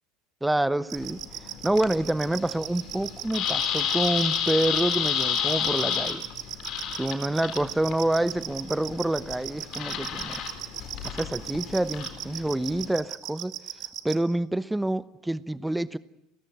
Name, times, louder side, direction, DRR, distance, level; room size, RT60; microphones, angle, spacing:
voice 1, 0.4-6.2 7.0-10.4 11.0-13.5 14.0-16.0, right 1 dB, 5° right, 1.0 m, -27 dB
sound 1, 0.9-12.9, left 8 dB, 55° left, 4.0 m, -31 dB
sound 2, 0.9-14.2, right 15 dB, 60° right, 2.0 m, -36 dB
29.0 x 14.5 x 9.0 m
hypercardioid pair, 85°, 0 cm